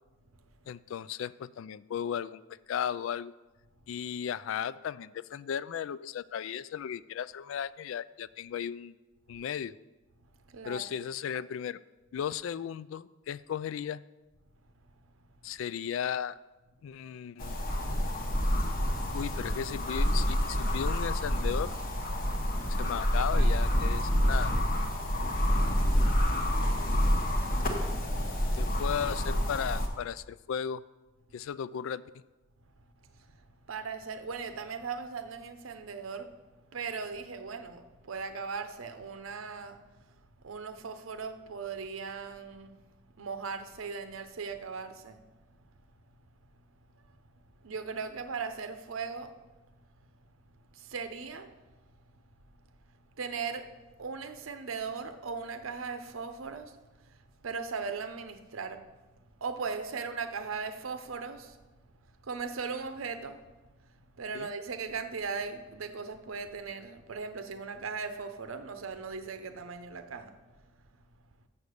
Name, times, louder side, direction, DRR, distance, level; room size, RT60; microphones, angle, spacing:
voice 1, 0.7-2.4 2.7-3.3 3.9-9.0 9.3-9.7 10.6-11.8 12.1-14.0 15.4-16.4 16.8-17.7 19.1-21.8 22.7-24.5 26.8-27.1 28.6-30.8 31.3-32.0 64.3-64.5, left 8 dB, 70° left, 18 dB, 0.3 m, -35 dB
voice 2, 10.5-10.8 23.3-23.6 25.6-25.8 33.7-36.3 36.7-39.8 40.4-42.8 43.2-45.2 47.6-49.3 50.7-51.5 53.2-53.7 54.0-56.8 57.4-58.8 59.4-61.6 62.2-63.4 64.2-70.3, right 5 dB, 80° right, 8 dB, 0.7 m, -38 dB
sound 1, 17.4-29.9, equal, 45° left, 1.1 m, -28 dB
7.2 x 6.7 x 6.4 m, 1.1 s
head